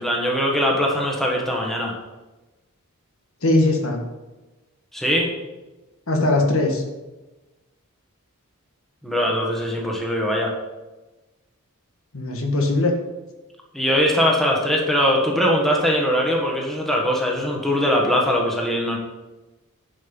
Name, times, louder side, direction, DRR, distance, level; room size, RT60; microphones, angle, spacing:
voice 1, 0.0-1.9 4.9-5.3 9.0-10.5 13.7-19.0, equal, ahead, -1 dB, 1.4 m, -21 dB
voice 2, 3.4-4.0 6.1-6.8 12.1-12.9, left 2 dB, 65° left, 2 dB, 1.6 m, -20 dB
11.0 x 5.3 x 5.4 m, 1.1 s
head